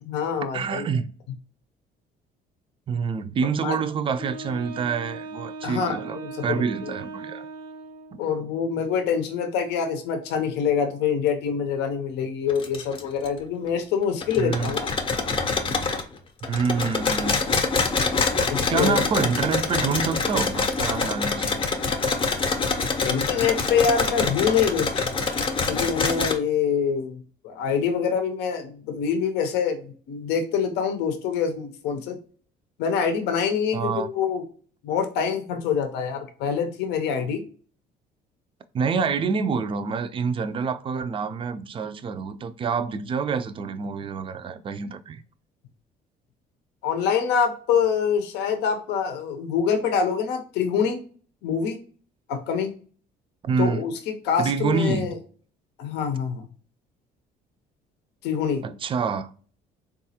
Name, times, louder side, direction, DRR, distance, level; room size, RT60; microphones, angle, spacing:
voice 1, 0.0-0.9 3.6-3.8 5.6-6.9 8.2-14.9 18.5-19.0 23.0-25.1 25.7-32.2 32.8-34.4 34.8-37.4 46.8-51.0 51.4-51.8 52.3-52.7 53.6-55.1 55.8-56.4 58.2-58.6, left 7 dB, 85° left, 0.6 m, -25 dB
voice 2, 0.5-1.1 2.9-7.5 14.4-14.8 16.5-17.4 18.7-21.6 33.7-34.1 38.7-45.2 53.4-53.8 54.4-55.2 58.6-59.3, right 5 dB, 30° right, 0.3 m, -27 dB
Wind instrument woodwind instrument, 4.2-8.3, right 3 dB, 80° right, 0.8 m, -38 dB
sound 1, 12.5-13.3 13.7-13.8 14.2-16.0 16.4-26.3, left 4 dB, 30° left, 0.6 m, -25 dB
3.9 x 2.3 x 2.7 m
cardioid pair, 110°, 17 cm